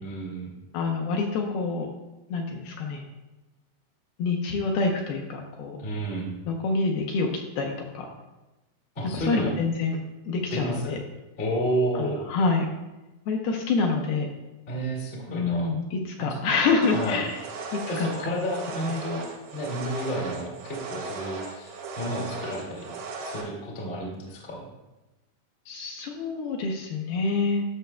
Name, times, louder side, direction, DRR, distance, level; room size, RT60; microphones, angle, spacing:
voice 1, 0.0-0.5 5.8-6.3 8.9-9.5 10.5-11.0 11.4-12.2 14.7-15.7 16.2-16.4 16.9-17.2 17.9-22.9 23.2-24.7, right 1 dB, 45° left, -3 dB, 0.7 m, -31 dB
voice 2, 0.7-1.9 2.3-3.0 4.2-5.8 6.5-7.3 7.6-8.1 9.1-10.0 10.3-11.0 12.0-12.7 13.3-14.3 15.3-17.4 17.7-18.1 25.7-27.6, left 4 dB, 75° left, 1 dB, 2.4 m, -27 dB
sound 1, 16.8-23.4, right 3 dB, 80° right, 3.2 m, -37 dB
13.0 x 6.5 x 2.3 m, 1.0 s
omnidirectional pair, 4.9 m